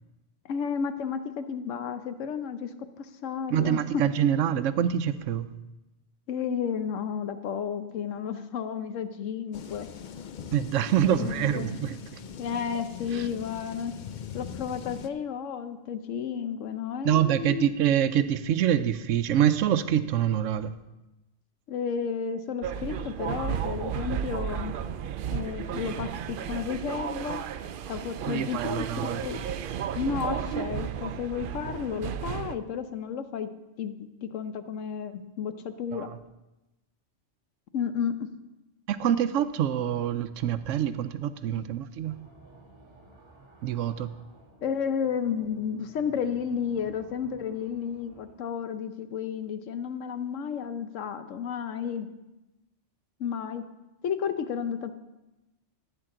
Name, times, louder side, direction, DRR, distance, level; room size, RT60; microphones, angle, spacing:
voice 1, 0.5-2.7 3.0-4.0 6.3-9.9 11.1-11.7 12.4-13.9 14.3-17.7 21.7-24.7 25.3-27.4 27.9-29.4 29.9-33.5 33.8-36.1 37.7-38.3 44.6-52.1 53.2-53.6 54.0-54.9, left 7 dB, 90° left, 10 dB, 1.1 m, -32 dB
voice 2, 3.5-5.5 10.5-12.2 13.1-13.3 17.0-20.7 28.2-29.2 35.9-36.2 38.9-42.2 43.6-44.1, right 10 dB, 90° right, 13 dB, 0.9 m, -26 dB
sound 1, 9.5-15.1, left 7 dB, 55° left, 0.5 m, -41 dB
sound 2, 22.6-32.6, right 8 dB, 60° right, 0.6 m, -33 dB
sound 3, 42.0-48.3, right 2 dB, 20° right, 1.7 m, -54 dB
15.0 x 8.9 x 3.8 m, 1.0 s
omnidirectional pair, 1.3 m